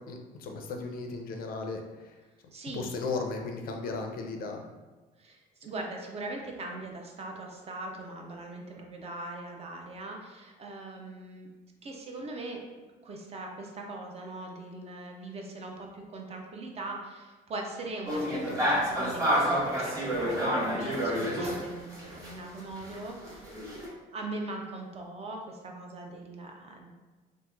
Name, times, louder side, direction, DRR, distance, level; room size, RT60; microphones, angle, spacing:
voice 1, 0.1-2.2 2.7-4.6, left 3 dB, 60° left, 3 dB, 0.5 m, -36 dB
voice 2, 2.5-2.9 5.2-11.5 11.8-12.6 13.0-23.6 24.1-26.9, right 2 dB, 35° right, 1 dB, 0.5 m, -41 dB
sound 1, 18.1-22.3 22.6-23.9, equal, 20° right, 1.1 m, -29 dB
2.9 x 2.0 x 3.4 m, 1.2 s
cardioid pair, 110°, 17 cm